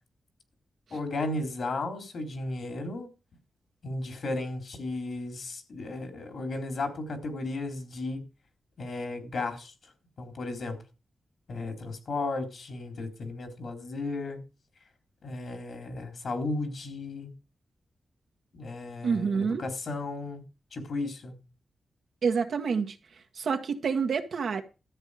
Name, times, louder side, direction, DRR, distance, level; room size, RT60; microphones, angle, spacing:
voice 1, 0.9-3.1 3.8-8.2 8.8-9.9 10.2-10.8 11.5-14.4 15.2-17.3 18.5-20.4 20.7-21.4, left 2 dB, 65° left, 3.9 m, -34 dB
voice 2, 19.0-19.6 22.2-23.0 23.3-24.6, right 5 dB, 75° right, 1.6 m, -27 dB
13.5 x 8.3 x 5.0 m
cardioid pair, 80°, 0 cm